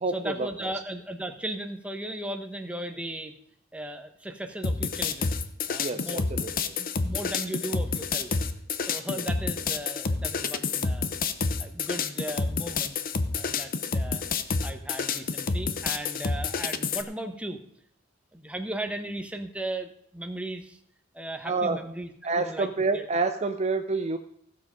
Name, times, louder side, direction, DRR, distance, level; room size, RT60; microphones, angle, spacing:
voice 1, 0.1-3.3 3.7-5.3 5.7-6.3 6.8-8.3 8.9-11.2 11.6-13.0 13.4-14.2 14.6-17.6 18.3-20.8 21.1-22.1 22.4-23.1, right 1 dB, 5° right, 6 dB, 1.1 m, -36 dB
sound 1, 4.6-17.0, left 4 dB, 45° left, 0.8 m, -29 dB
voice 2, 5.8-6.5 9.1-9.2 21.5-21.8 22.2-24.2, right 3 dB, 35° right, 8 dB, 0.6 m, -27 dB
15.5 x 7.5 x 5.2 m, 0.70 s
head